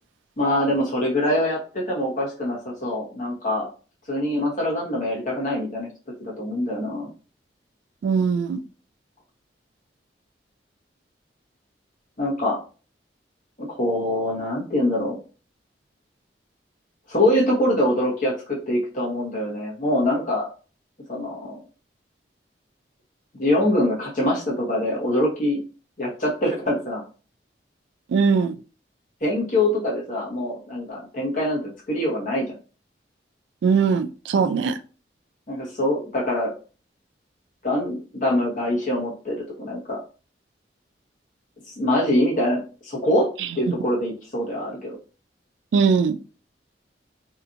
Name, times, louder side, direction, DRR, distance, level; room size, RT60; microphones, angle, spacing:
voice 1, 0.4-3.7 4.1-5.9 6.2-7.1 12.2-12.6 13.6-15.2 17.1-20.5 21.1-21.6 23.3-25.6 26.0-27.0 29.2-32.5 35.5-36.5 37.6-40.0 41.8-45.0, left 1 dB, 45° left, 1.0 m, -24 dB
voice 2, 8.0-8.6 28.1-28.6 33.6-34.8 45.7-46.2, right 5 dB, 85° right, 0.3 m, -20 dB
2.8 x 2.4 x 2.5 m
head